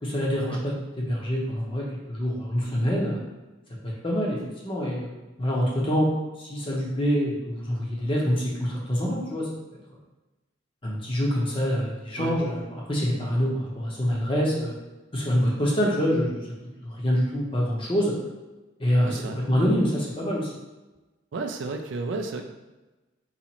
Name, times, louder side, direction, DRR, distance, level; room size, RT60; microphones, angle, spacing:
voice 1, 0.0-3.2 3.8-4.4 4.6-6.1 6.4-9.5 10.8-14.7 15.1-16.4 16.8-18.1 18.8-20.5, equal, 25° left, -3 dB, 0.7 m, -26 dB
voice 2, 19.0-19.4 21.3-22.4, right 3 dB, 65° right, 5 dB, 0.3 m, -32 dB
4.1 x 2.4 x 2.9 m, 1.1 s
head